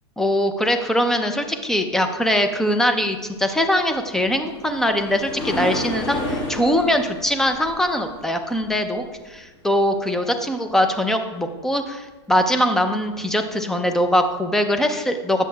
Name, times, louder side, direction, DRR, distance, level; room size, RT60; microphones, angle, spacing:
voice 1, 0.2-15.5, equal, 5° left, 6 dB, 0.5 m, -22 dB
sound 1, 4.0-9.2 13.1-13.2 13.8-13.9, left 1 dB, 30° left, 1.5 m, -31 dB
10.0 x 7.2 x 2.3 m, 1.2 s
hypercardioid pair, 135°, 15 cm